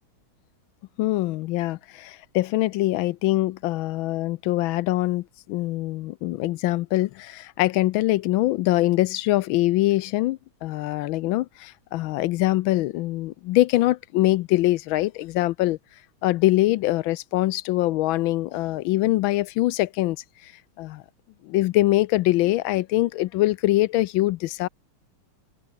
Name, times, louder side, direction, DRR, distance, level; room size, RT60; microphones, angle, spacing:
voice 1, 1.0-15.8 16.2-20.5 20.8-21.0 21.4-24.7, left 17 dB, 75° left, 1.2 m, -23 dB
omnidirectional pair, 2.4 m